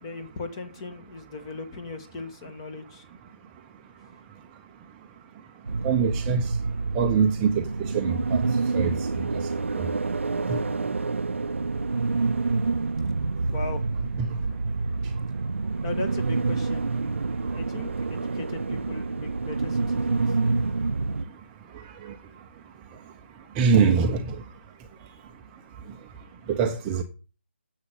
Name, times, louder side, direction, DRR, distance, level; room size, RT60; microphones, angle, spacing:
voice 1, 0.0-3.0 13.5-13.8 15.8-16.9 17.5-20.4, left 3 dB, 25° left, 1.9 m, -37 dB
sound 1, 5.7-21.2, right 3 dB, 80° right, 0.6 m, -27 dB
voice 2, 5.8-6.5 6.9-7.6 7.9-8.4 8.7-8.9 9.8-9.9 10.5-10.6 14.2-14.3 23.6-24.3 26.5-27.0, right 6 dB, 15° right, 0.8 m, -23 dB
10.0 x 7.4 x 7.0 m
figure-of-eight pair, 160°, 7 cm